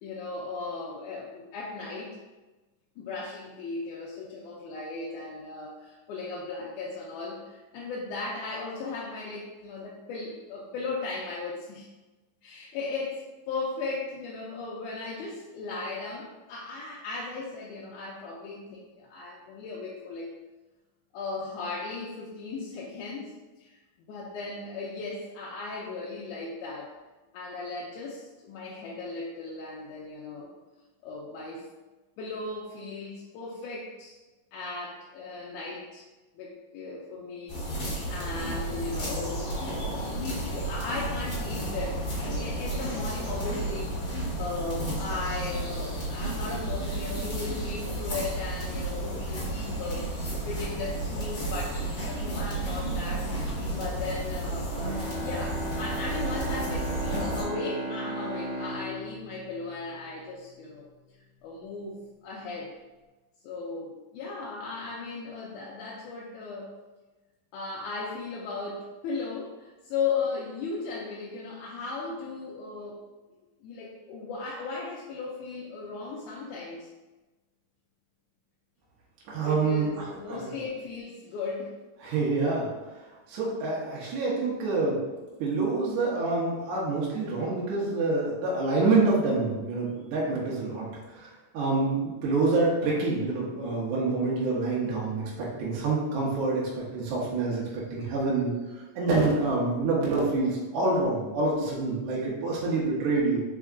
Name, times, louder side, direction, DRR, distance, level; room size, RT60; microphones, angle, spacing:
voice 1, 0.0-2.2 3.0-11.9 12.4-20.3 21.1-23.3 23.6-23.8 24.1-26.9 27.3-30.5 31.0-31.6 32.2-34.2 34.5-36.0 36.4-53.3 53.8-60.9 61.4-62.0 62.2-62.8 63.4-66.7 67.5-73.0 73.6-76.9 79.4-81.7, left 3 dB, 80° left, -4 dB, 1.9 m, -37 dB
sound 1, 37.5-57.4, right 1 dB, 45° left, 1.4 m, -32 dB
Bowed string instrument, 54.8-60.3, right 1 dB, 55° right, 1.7 m, -36 dB
voice 2, 79.3-80.5 82.0-82.7 83.3-85.0 85.4-91.3 91.5-98.5 99.0-103.4, right 3 dB, 70° right, -5 dB, 2.2 m, -27 dB
4.7 x 4.4 x 2.4 m, 1.2 s
omnidirectional pair, 3.8 m